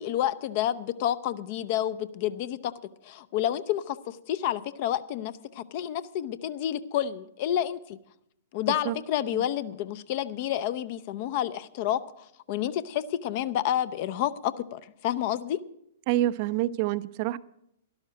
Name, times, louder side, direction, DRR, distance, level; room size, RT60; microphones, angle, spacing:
voice 1, 0.0-2.7 3.0-8.0 8.5-15.6, left 11 dB, 40° left, 16 dB, 0.5 m, -29 dB
voice 2, 16.1-17.4, right 14 dB, 40° right, 16 dB, 0.4 m, -27 dB
12.0 x 12.0 x 5.1 m, 0.78 s
figure-of-eight pair, 110°, 0 cm